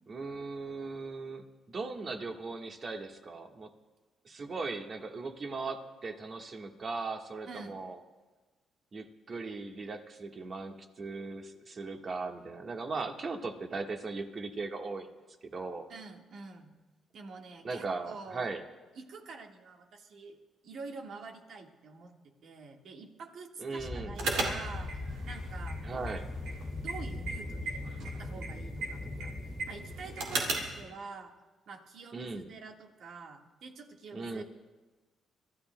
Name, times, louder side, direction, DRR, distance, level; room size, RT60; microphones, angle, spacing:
voice 1, 0.1-3.7 4.2-8.0 8.9-15.1 15.4-15.9 17.6-18.6 23.6-24.2 25.8-26.3 32.1-32.5 34.1-34.4, right 3 dB, 45° right, 4 dB, 1.4 m, -38 dB
voice 2, 7.5-7.8 15.9-16.7 17.1-18.5 18.9-20.4 20.6-25.0 25.2-26.2 26.7-29.3 29.7-31.3 31.7-34.4, right 4 dB, 65° right, 3 dB, 1.5 m, -47 dB
sound 1, 23.8-30.9, left 2 dB, 20° left, 1.9 m, -40 dB
sound 2, 24.1-30.8, right 3 dB, 90° right, 2.3 m, -37 dB
28.5 x 13.5 x 2.2 m, 1.2 s
cardioid pair, 90°, 0 cm